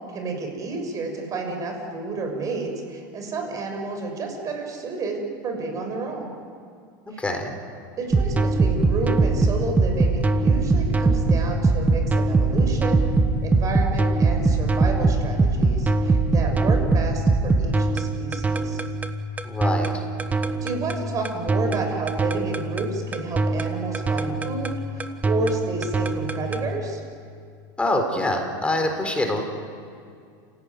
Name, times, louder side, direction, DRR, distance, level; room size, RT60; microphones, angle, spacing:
voice 1, 0.1-6.3 7.1-7.2 8.0-13.0 13.4-18.8 20.6-27.0, right 3 dB, 30° right, 3 dB, 6.5 m, -30 dB
voice 2, 7.2-7.5 19.4-19.9 27.8-29.4, left 1 dB, 10° left, 4 dB, 4.2 m, -24 dB
sound 1, 8.1-26.7, right 3 dB, 15° right, 1.4 m, -22 dB
30.0 x 17.0 x 9.7 m, 2.3 s
supercardioid pair, 130°, 11 cm